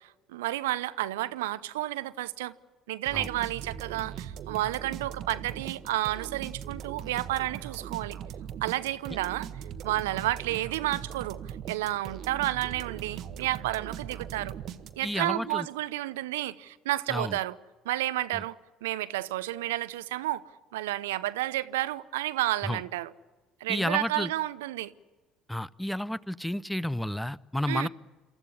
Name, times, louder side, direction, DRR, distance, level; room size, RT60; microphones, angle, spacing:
voice 1, 0.0-2.5 2.9-8.2 8.6-9.5 9.8-14.6 15.0-17.6 17.8-18.6 18.8-20.4 20.7-23.1 23.6-24.9 27.7-27.9, right 16 dB, 80° right, 0.7 m, -31 dB
sound 1, 3.1-15.3, right 9 dB, 55° right, 1.3 m, -40 dB
voice 2, 15.0-15.7 17.1-17.4 22.7-22.8 23.7-24.3 25.5-27.9, left 1 dB, 5° left, 0.7 m, -31 dB
27.5 x 14.0 x 9.8 m
hypercardioid pair, 60°, 0 cm